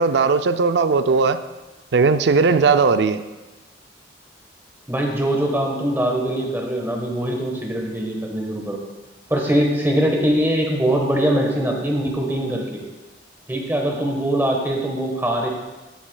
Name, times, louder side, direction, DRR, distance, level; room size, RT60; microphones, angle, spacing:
voice 1, 0.0-1.4 1.9-3.2, right 4 dB, 65° right, 11 dB, 0.4 m, -17 dB
voice 2, 4.9-8.9 9.3-12.8 13.5-15.5, right 1 dB, 10° right, 1 dB, 1.2 m, -22 dB
13.5 x 7.4 x 2.2 m, 1.1 s
head